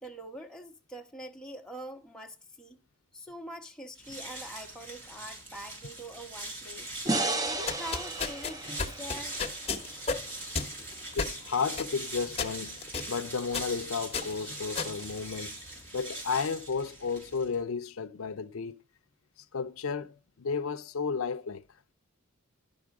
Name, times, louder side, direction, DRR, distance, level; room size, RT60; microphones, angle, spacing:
voice 1, 0.0-2.8 3.1-6.9 7.4-9.4, right 1 dB, 5° left, 1.1 m, -44 dB
sound 1, 3.9-17.6, right 2 dB, 55° right, 4.6 m, -42 dB
sound 2, 7.1-10.3, right 2 dB, 15° right, 0.5 m, -33 dB
sound 3, 7.6-15.9, left 4 dB, 25° left, 1.1 m, -36 dB
voice 2, 11.1-12.8 13.1-15.6 15.9-18.8 19.5-21.6, left 5 dB, 70° left, 0.5 m, -33 dB
11.0 x 6.3 x 4.7 m
head